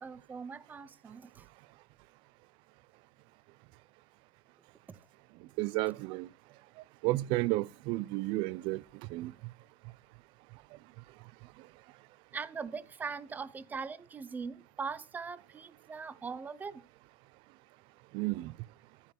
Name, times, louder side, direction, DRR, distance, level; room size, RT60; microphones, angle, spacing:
voice 1, 0.0-1.5 4.9-5.0 12.3-16.9, right 5 dB, 15° right, 0.9 m, -41 dB
voice 2, 5.4-6.3 7.0-9.3 11.6-11.7 18.1-18.6, right 20 dB, 45° right, 0.6 m, -32 dB
14.0 x 5.7 x 6.0 m
supercardioid pair, 135°, 12 cm